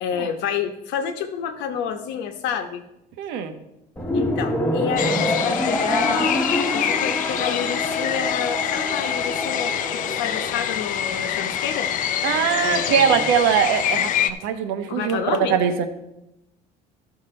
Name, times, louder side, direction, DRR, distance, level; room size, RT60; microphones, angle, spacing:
voice 1, 0.0-2.8 4.1-6.4 6.7-11.9 12.6-13.3 14.9-15.6, left 8 dB, 75° left, 7 dB, 1.1 m, -29 dB
voice 2, 3.2-3.5 12.2-15.9, right 8 dB, 85° right, 8 dB, 1.1 m, -22 dB
sound 1, 4.0-10.5, left 1 dB, 10° left, 1.2 m, -26 dB
sound 2, 5.0-14.3, left 9 dB, 45° left, 0.5 m, -26 dB
13.0 x 6.0 x 4.3 m, 0.90 s
cardioid pair, 150°, 18 cm